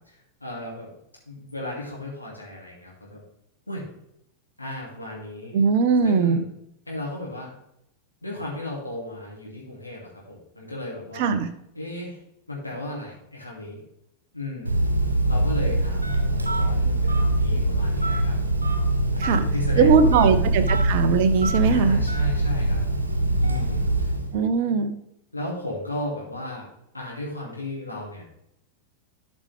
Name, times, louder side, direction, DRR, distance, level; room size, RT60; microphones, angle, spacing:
voice 1, 0.4-0.9 1.3-3.2 3.7-3.9 4.6-5.6 6.0-6.5 6.9-7.5 8.2-11.3 11.7-12.2 12.5-13.8 14.3-14.8 15.3-18.4 19.1-20.4 20.7-20.8 21.7-22.8 23.4-24.1 24.6-24.7 25.3-26.7 26.9-28.2, left 1 dB, 85° left, -4 dB, 2.6 m, -35 dB
voice 2, 5.5-6.4 11.2-11.5 19.2-19.4 19.8-22.0 24.3-24.9, right 5 dB, 50° right, 10 dB, 0.9 m, -20 dB
Telephone, 14.7-24.4, right 1 dB, 80° right, 1.3 m, -23 dB
12.0 x 5.3 x 3.4 m, 0.79 s
figure-of-eight pair, 90°, 0 cm